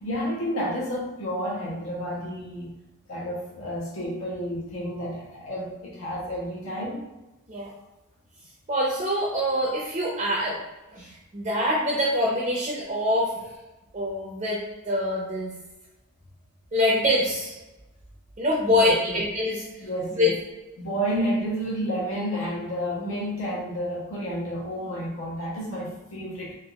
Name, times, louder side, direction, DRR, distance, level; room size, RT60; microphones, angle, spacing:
voice 1, 0.0-2.7 3.1-7.0 18.7-19.2 19.8-20.4 20.8-26.5, equal, 75° left, -5 dB, 0.8 m, -30 dB
voice 2, 8.7-10.6 10.9-11.1 11.3-13.3 13.9-14.6 14.9-15.5 16.7-17.6 18.4-19.6 20.2-20.3, left 1 dB, 30° right, -4 dB, 0.4 m, -24 dB
3.4 x 2.3 x 2.3 m, 1.0 s
head